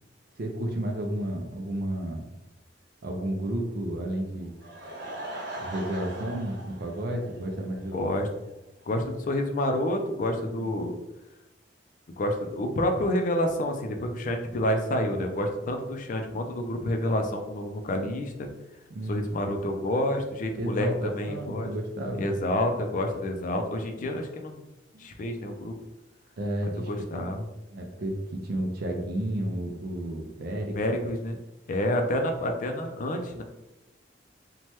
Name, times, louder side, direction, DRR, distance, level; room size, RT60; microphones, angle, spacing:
voice 1, 0.4-2.2 3.0-4.5 5.6-8.1 10.6-10.7 18.9-19.3 20.6-22.3 24.9-25.0 26.4-27.2 27.7-30.8, right 1 dB, 60° right, 2 dB, 0.4 m, -32 dB
Laughter / Crowd, 4.4-7.9 8.2-8.3 8.8-8.9 9.1-9.2, right 1 dB, 75° right, 1.0 m, -40 dB
voice 2, 7.9-8.3 8.9-11.0 12.2-18.5 19.1-21.7 22.1-24.6 25.0-25.7 26.6-27.4 30.8-31.4 31.7-33.4, left 1 dB, 45° left, 4 dB, 0.4 m, -28 dB
3.1 x 2.2 x 2.9 m, 0.95 s
head